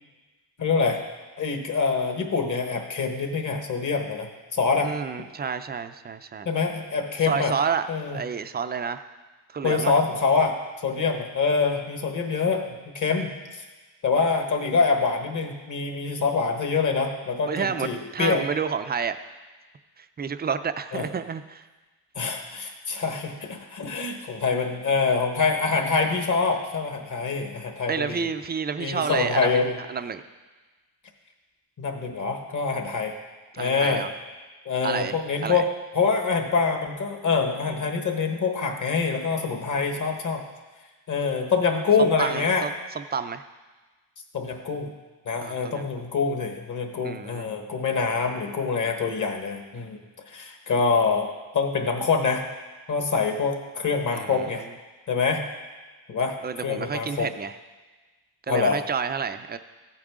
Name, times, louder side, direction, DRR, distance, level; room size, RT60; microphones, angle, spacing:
voice 1, 0.6-1.0 1.4-4.9 6.4-7.5 7.9-8.2 9.6-10.5 10.8-13.6 14.0-18.4 20.9-21.1 22.1-28.3 28.8-29.7 31.8-33.1 33.6-34.0 34.6-35.7 35.9-40.4 41.1-42.6 44.3-44.9 45.2-50.0 50.3-52.4 52.9-54.6 55.1-55.4 56.1-56.3 56.6-57.3 58.5-58.8, left 4 dB, 45° left, 4 dB, 1.4 m, -25 dB
voice 2, 4.8-6.5 7.2-7.9 8.1-9.0 9.5-9.9 17.5-19.3 20.0-21.7 27.9-29.6 29.9-30.2 33.5-34.1 34.8-35.6 42.0-43.4 45.4-45.9 47.0-47.5 54.1-54.5 56.4-57.6 58.5-59.6, right 6 dB, 25° right, 11 dB, 0.3 m, -30 dB
15.0 x 8.7 x 3.6 m, 1.3 s
wide cardioid pair, 145°, 43 cm